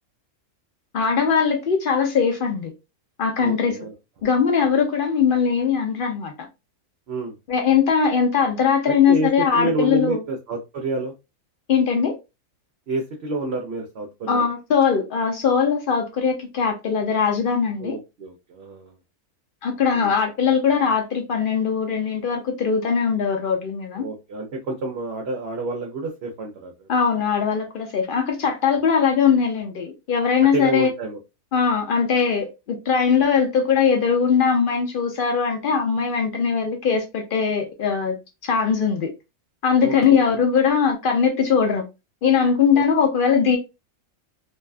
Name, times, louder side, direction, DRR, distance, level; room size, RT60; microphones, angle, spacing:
voice 1, 0.9-2.7 3.2-3.8 4.2-6.5 7.5-10.2 11.7-12.1 14.3-18.0 19.6-24.1 26.9-30.9 31.5-38.2 38.4-39.1 39.6-41.8 42.2-43.6, left 6 dB, 70° left, 0.5 m, -20 dB
voice 2, 3.4-3.9 7.1-7.4 8.9-11.1 12.9-14.5 17.8-19.0 19.9-20.1 24.0-26.9 30.5-31.2 39.8-40.5 42.7-42.8, right 2 dB, 60° right, 0.7 m, -29 dB
2.6 x 2.2 x 2.3 m
omnidirectional pair, 1.5 m